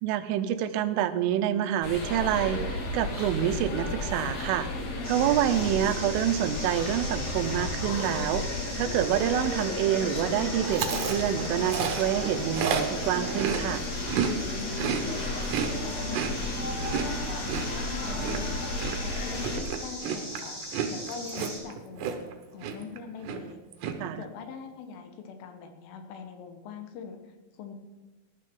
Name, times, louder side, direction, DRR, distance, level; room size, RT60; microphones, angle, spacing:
voice 1, 0.0-4.7 5.1-8.4 8.8-13.8 24.0-24.2, right 10 dB, 85° right, 11 dB, 3.3 m, -27 dB
sound 1, 1.8-19.6, left 2 dB, 50° left, 2.3 m, -33 dB
sound 2, 5.0-21.6, equal, 5° left, 4.2 m, -40 dB
Chewing mastication, 10.7-14.3 14.6-22.3 22.6-23.0 23.2-23.9, right 7 dB, 70° right, 3.0 m, -32 dB
voice 2, 14.5-20.6 20.9-23.6 24.0-27.7, left 6 dB, 80° left, 6 dB, 3.8 m, -43 dB
19.0 x 12.0 x 3.8 m, 1.2 s
omnidirectional pair, 5.6 m